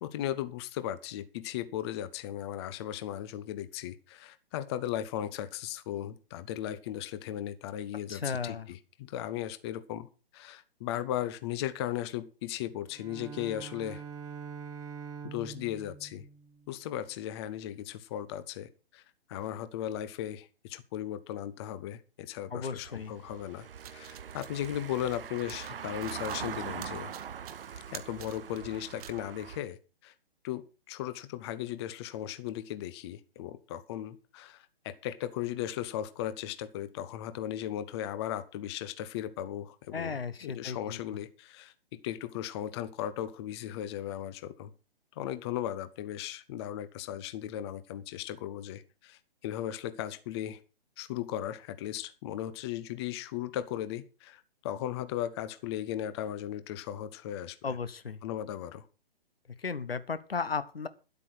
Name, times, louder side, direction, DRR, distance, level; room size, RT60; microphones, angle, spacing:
voice 1, 0.0-14.0 15.2-16.3 16.7-19.0 19.3-23.7 23.9-27.1 27.9-30.1 30.4-30.6 30.9-44.7 45.2-50.6 51.0-57.8 58.2-58.9, left 12 dB, 25° left, 13 dB, 0.8 m, -37 dB
voice 2, 8.1-8.7 22.5-23.1 39.9-41.0 57.6-58.2 59.6-60.9, left 5 dB, 75° left, 14 dB, 1.3 m, -35 dB
Bowed string instrument, 12.8-17.0, right 6 dB, 10° right, 0.7 m, -44 dB
Car passing by / Engine, 22.8-29.6, right 8 dB, 65° right, 0.7 m, -42 dB
sound 1, 23.6-29.2, right 11 dB, 40° right, 1.4 m, -50 dB
11.5 x 8.4 x 6.2 m, 0.33 s
figure-of-eight pair, 130°, 30 cm